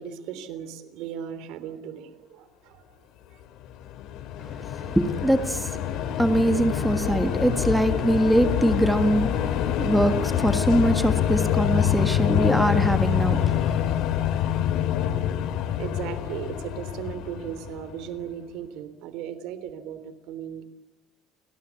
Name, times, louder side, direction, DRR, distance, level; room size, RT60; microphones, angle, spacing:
voice 1, 0.0-3.0 3.3-3.4 15.8-20.6, right 9 dB, 75° right, 3.4 m, -37 dB
sound 1, 3.6-18.1, left 10 dB, 65° left, 3.0 m, -26 dB
voice 2, 4.6-14.0, right 1 dB, 5° right, 1.7 m, -23 dB
29.5 x 21.0 x 8.3 m
cardioid pair, 145°, 0 cm